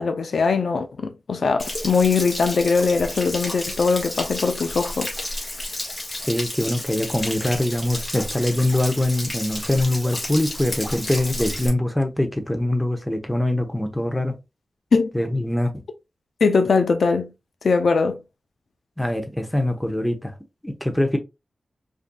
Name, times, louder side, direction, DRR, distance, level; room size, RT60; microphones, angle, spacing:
voice 1, 0.0-5.1 14.9-15.1 16.4-17.3 17.6-18.2, left 4 dB, 75° left, 0.5 m, -21 dB
Stream / Splash splatter / Trickle dribble, 1.6-11.7, left 1 dB, 30° left, 1.6 m, -31 dB
voice 2, 6.2-14.3 15.1-15.8 19.0-20.3 20.6-21.2, left 1 dB, 5° left, 0.8 m, -23 dB
5.0 x 2.7 x 2.3 m
wide cardioid pair, 70°, 0 cm